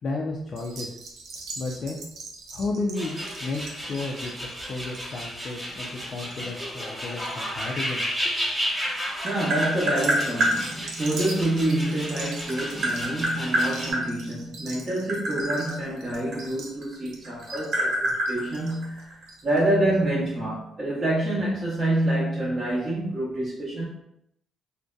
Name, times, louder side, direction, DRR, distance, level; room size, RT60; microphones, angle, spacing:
voice 1, 0.0-1.0 1.6-2.0 2.5-4.3 4.7-8.4, left 3 dB, 55° left, -2 dB, 0.4 m, -32 dB
sound 1, 0.6-7.3 7.6-8.1 8.7-9.0 9.8-19.6 19.9-20.0 20.3-20.4, right 3 dB, 85° right, 0.4 m, -42 dB
sound 2, 2.9-13.9, equal, ahead, 1.0 m, -33 dB
voice 2, 9.0-23.8, right 1 dB, 35° right, -7 dB, 0.7 m, -27 dB
Tap, 9.1-10.5 11.9-14.0 14.8-16.9 17.2-19.2, right 1 dB, 65° right, 1.0 m, -26 dB
2.6 x 2.1 x 2.3 m, 0.77 s
cardioid pair, 90°, 0 cm